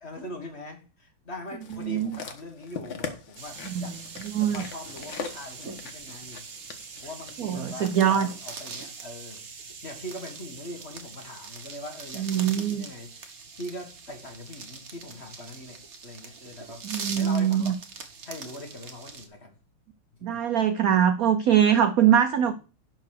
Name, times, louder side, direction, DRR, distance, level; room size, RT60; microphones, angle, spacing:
voice 1, 0.0-4.0 4.4-6.4 7.0-9.4 9.8-17.8 18.2-19.6 20.2-20.4 22.0-22.1 22.5-22.6, left 1 dB, 35° left, 1.8 m, -42 dB
sound 1, 1.6-8.0 8.7-8.8, left 6 dB, 70° left, 1.9 m, -41 dB
voice 2, 1.8-2.2 3.7-3.9 4.3-4.6 7.4-8.3 12.2-12.9 16.8-17.7 20.2-22.5, right 9 dB, 75° right, 0.8 m, -22 dB
sound 2, 3.4-19.3, right 5 dB, 45° right, 1.6 m, -42 dB
11.5 x 4.6 x 6.5 m
omnidirectional pair, 2.3 m